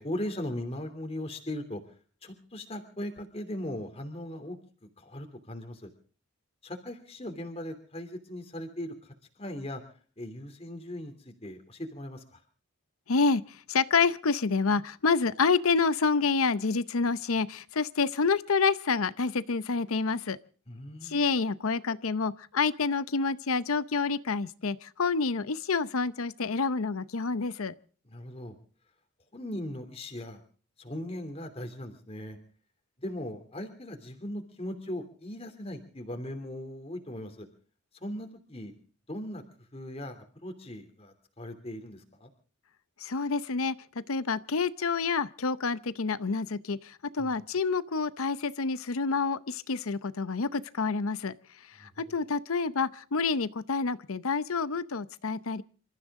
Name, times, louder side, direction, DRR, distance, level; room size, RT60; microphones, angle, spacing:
voice 1, 0.0-1.8 2.2-4.6 5.0-5.9 6.6-8.9 9.4-9.8 10.2-12.4 20.7-21.2 28.1-28.5 29.3-30.4 30.8-32.4 33.0-37.5 38.0-38.7 39.1-39.4 39.7-42.3 47.2-47.3 51.8-51.9, left 1 dB, 25° left, 5 dB, 2.9 m, -38 dB
voice 2, 13.1-20.4 21.0-27.7 43.0-43.7 44.1-51.3 51.7-55.6, left 4 dB, 75° left, 16 dB, 0.7 m, -28 dB
28.0 x 14.0 x 3.7 m, 0.42 s
head